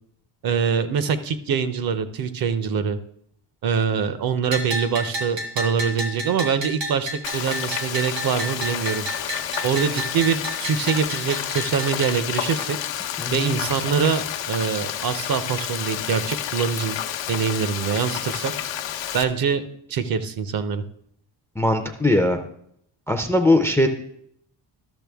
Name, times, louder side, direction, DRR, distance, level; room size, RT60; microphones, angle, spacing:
voice 1, 0.4-3.0 3.6-9.0 9.6-12.8 13.3-17.0 17.3-18.5 19.1-19.6 19.9-20.8, right 6 dB, 55° right, 12 dB, 0.7 m, -24 dB
Bell, 4.5-12.1, right 1 dB, 80° right, 1.8 m, -31 dB
Frying (food), 7.2-19.2, left 10 dB, 85° left, 0.8 m, -30 dB
voice 2, 13.2-13.5 21.6-22.4 23.1-23.9, left 1 dB, 5° left, 7 dB, 0.4 m, -20 dB
12.0 x 6.7 x 3.4 m, 0.70 s
cardioid pair, 155°, 43 cm